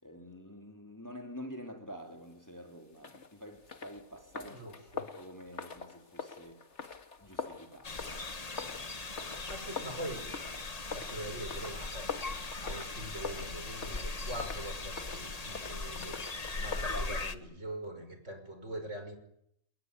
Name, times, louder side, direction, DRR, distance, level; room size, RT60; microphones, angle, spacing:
voice 1, 0.0-6.6 7.2-8.5 16.8-17.6, equal, 10° left, 3.5 m, -48 dB
sound 1, 2.9-17.0, left 5 dB, 55° left, 2.3 m, -45 dB
voice 2, 4.5-5.0 9.5-10.3 10.9-12.1 12.6-16.2 16.5-19.2, right 1 dB, 55° right, 6.2 m, -43 dB
sound 2, 7.8-17.4, left 3 dB, 30° left, 1.4 m, -39 dB
28.5 x 21.0 x 9.8 m
omnidirectional pair, 1.5 m